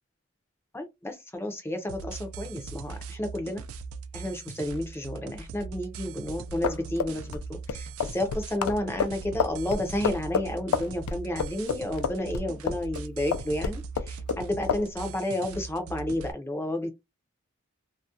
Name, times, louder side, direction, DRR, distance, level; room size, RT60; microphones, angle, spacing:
voice 1, 0.7-3.6 4.1-16.9, left 1 dB, 10° left, 0.4 m, -31 dB
sound 1, 1.9-16.3, right 5 dB, 85° right, 0.4 m, -40 dB
sound 2, 6.5-13.0 13.3-14.4 14.7-14.9, left 6 dB, 90° left, 0.3 m, -29 dB
2.4 x 2.1 x 2.5 m
head